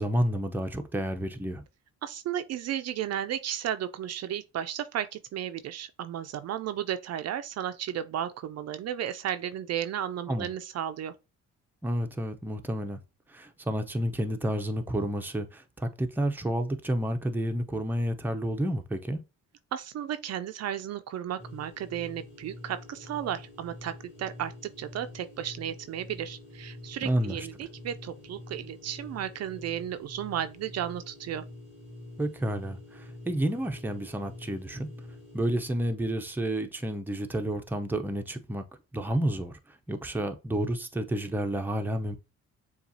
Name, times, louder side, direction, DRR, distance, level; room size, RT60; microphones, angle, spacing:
voice 1, 0.0-1.6 10.3-10.5 11.8-13.0 13.3-19.2 27.0-27.5 32.2-34.9 35.3-38.6 38.9-42.2, right 1 dB, 5° right, 0.6 m, -30 dB
voice 2, 2.0-11.1 19.7-31.4, right 10 dB, 60° right, 0.4 m, -34 dB
sound 1, 21.4-35.7, left 1 dB, 80° left, 1.2 m, -46 dB
6.9 x 2.4 x 2.7 m
cardioid pair, 90°, 30 cm